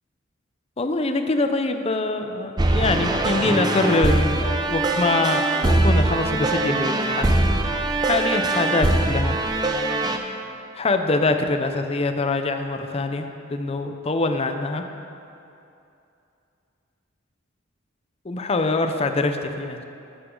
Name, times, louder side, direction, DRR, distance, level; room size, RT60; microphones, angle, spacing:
voice 1, 0.8-7.3 8.0-9.4 10.8-14.8 18.2-19.8, left 2 dB, 30° left, 7 dB, 0.5 m, -24 dB
sound 1, 2.6-10.2, right 2 dB, 20° right, 0.6 m, -22 dB
12.0 x 8.0 x 3.8 m, 2.7 s
head